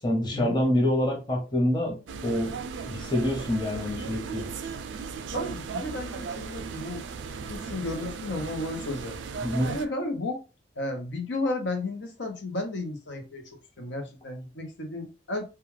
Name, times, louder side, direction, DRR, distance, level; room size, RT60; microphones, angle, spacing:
voice 1, 0.0-2.6 2.8-4.5 9.4-9.8, left 1 dB, 25° left, 0.8 m, -26 dB
sound 1, 2.1-9.9, right 5 dB, 90° right, 0.3 m, -36 dB
voice 2, 5.3-7.0 7.5-9.2 9.7-10.4 10.8-13.4 13.8-15.4, left 2 dB, 85° left, 0.8 m, -33 dB
2.3 x 2.3 x 3.1 m
head